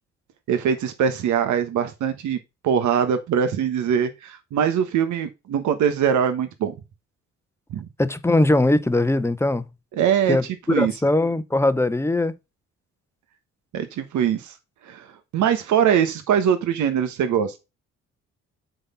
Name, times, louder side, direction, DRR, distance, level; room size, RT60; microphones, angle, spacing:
voice 1, 0.5-2.4 2.6-6.7 7.7-7.9 10.0-10.4 10.7-10.9 13.7-14.5 14.8-15.1 15.3-17.5, right 8 dB, 75° right, 1.2 m, -22 dB
voice 2, 8.0-9.6 10.3-10.4 10.8-12.3, left 2 dB, 10° left, 0.7 m, -20 dB
7.8 x 4.1 x 5.5 m
cardioid pair, 90°, 30 cm